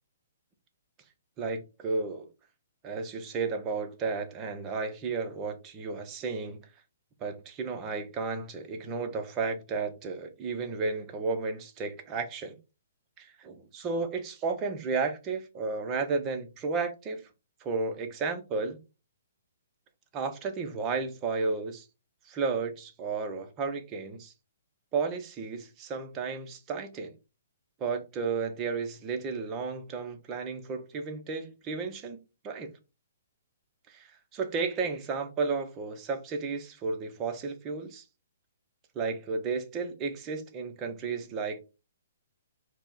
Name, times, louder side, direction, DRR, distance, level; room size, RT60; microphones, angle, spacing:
voice 1, 1.4-2.3 2.8-6.6 7.2-12.6 13.2-17.2 17.6-18.8 20.1-21.9 22.3-24.3 24.9-27.1 27.8-32.2 32.4-32.7 33.9-38.0 38.9-41.6, right 4 dB, 20° right, 0.6 m, -33 dB
4.7 x 2.1 x 3.9 m
hypercardioid pair, 165°, 0 cm